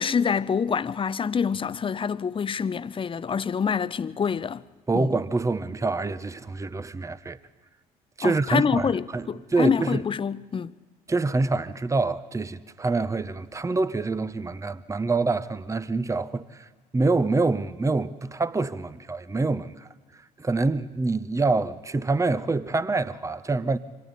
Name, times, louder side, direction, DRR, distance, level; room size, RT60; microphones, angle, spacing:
voice 1, 0.0-4.6 4.9-5.1 8.2-10.7, left 6 dB, 30° left, 0.7 m, -26 dB
voice 2, 4.9-7.4 8.2-10.0 11.1-23.8, right 3 dB, 15° right, 0.9 m, -26 dB
28.0 x 25.0 x 4.1 m
hypercardioid pair, 60°, 19 cm